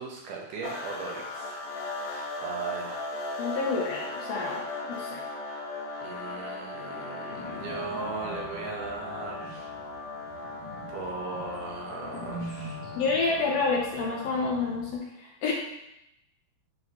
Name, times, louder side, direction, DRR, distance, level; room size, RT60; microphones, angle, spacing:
voice 1, 0.0-1.5 1.9-3.3 6.0-9.7 10.3-10.5 10.9-12.8, right 4 dB, 85° right, -2 dB, 2.9 m, -38 dB
sound 1, 0.6-14.8, left 2 dB, 85° left, 2.5 m, -38 dB
voice 2, 3.4-4.6 4.9-5.2 13.0-15.5, left 4 dB, 65° left, -2 dB, 1.9 m, -28 dB
sound 2, 7.3-14.9, equal, 45° left, 1.7 m, -44 dB
9.0 x 4.9 x 3.2 m, 0.85 s
omnidirectional pair, 3.6 m